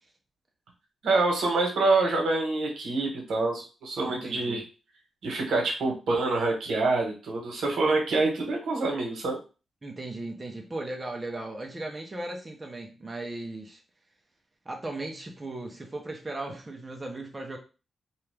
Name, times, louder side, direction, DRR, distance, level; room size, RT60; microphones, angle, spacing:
voice 1, 1.0-4.6 5.2-9.4, right 3 dB, 90° right, 1 dB, 1.0 m, -26 dB
voice 2, 4.0-4.6 9.8-13.8 14.7-17.6, right 2 dB, 20° right, 1 dB, 0.5 m, -37 dB
2.9 x 2.3 x 3.3 m, 0.33 s
wide cardioid pair, 150°, 0 cm